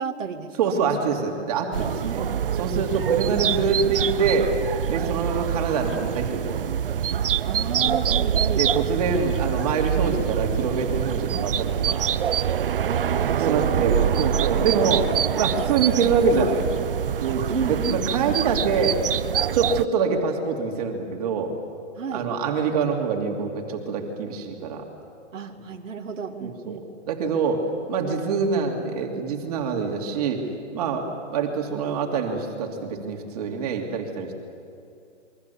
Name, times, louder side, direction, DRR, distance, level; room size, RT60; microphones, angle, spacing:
voice 1, 0.0-0.9 2.0-2.3 3.4-3.5 7.4-8.6 12.8-14.2 17.5-18.4 22.0-22.3 25.3-26.8, right 5 dB, 90° right, 1 dB, 2.3 m, -32 dB
voice 2, 0.6-2.2 2.6-4.5 4.9-6.7 8.5-12.1 13.4-16.7 17.2-19.0 19.5-21.5 22.1-24.8 26.4-26.8 27.1-27.6 27.9-30.5 30.7-34.3, right 5 dB, 30° right, 2 dB, 3.0 m, -25 dB
sound 1, 1.7-19.8, right 9 dB, 50° right, 0.6 m, -25 dB
27.5 x 23.5 x 7.1 m, 2.5 s
hypercardioid pair, 170°, 37 cm